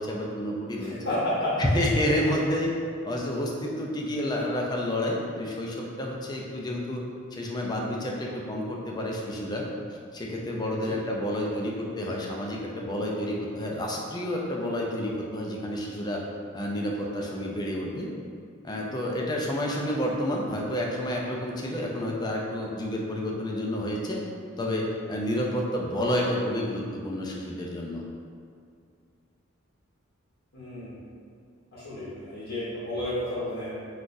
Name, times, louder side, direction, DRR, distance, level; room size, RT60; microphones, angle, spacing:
voice 1, 0.0-0.9 1.6-2.7 3.0-7.0 7.3-9.7 10.1-16.2 16.5-18.1 18.6-24.2 24.6-28.0, left 1 dB, 20° left, -1 dB, 0.3 m, -29 dB
voice 2, 0.8-1.6 10.8-11.0 30.5-31.0 31.7-33.9, left 1 dB, 65° left, -11 dB, 0.8 m, -31 dB
3.8 x 2.3 x 2.5 m, 2.3 s
head